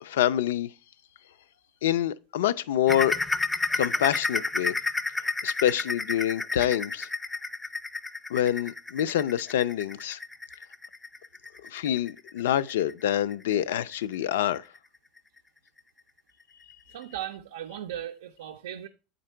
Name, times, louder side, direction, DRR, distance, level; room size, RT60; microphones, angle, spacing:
voice 1, 0.0-0.7 1.8-3.1 3.7-4.8 5.4-7.1 8.3-10.2 11.7-14.6, left 11 dB, 85° left, 0.4 m, -26 dB
sound 1, 2.9-14.2 14.6-14.8 15.2-15.3 15.8-15.9, left 3 dB, 10° left, 0.4 m, -31 dB
voice 2, 16.9-18.9, right 11 dB, 90° right, 0.5 m, -37 dB
8.3 x 3.9 x 4.4 m
supercardioid pair, 110°, 0 cm